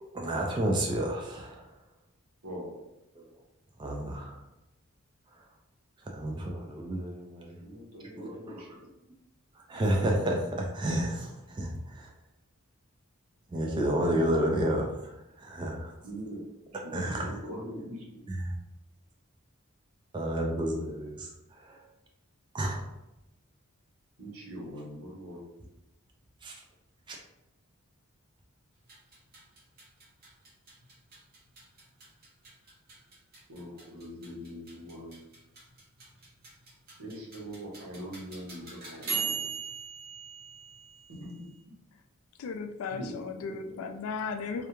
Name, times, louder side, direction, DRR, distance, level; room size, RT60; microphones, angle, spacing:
voice 1, 0.0-1.6 3.2-3.3 3.8-4.4 6.0-7.6 8.5-8.6 9.6-12.1 13.5-15.9 16.9-17.3 18.3-18.5 20.1-21.3 21.6-21.8 22.5-22.8 26.4-26.5 27.1-27.2, right 1 dB, 20° right, 0 dB, 0.3 m, -30 dB
voice 2, 2.4-2.8 7.6-8.9 16.0-16.4 16.8-18.3 24.2-25.4 33.5-35.2 37.0-39.4 41.1-41.5 42.9-43.8, equal, 85° right, -2 dB, 0.8 m, -42 dB
sound 1, 28.8-41.5, right 5 dB, 45° right, 0.7 m, -41 dB
voice 3, 42.4-44.7, left 5 dB, 75° left, 7 dB, 0.3 m, -36 dB
2.3 x 2.1 x 2.9 m, 0.92 s
head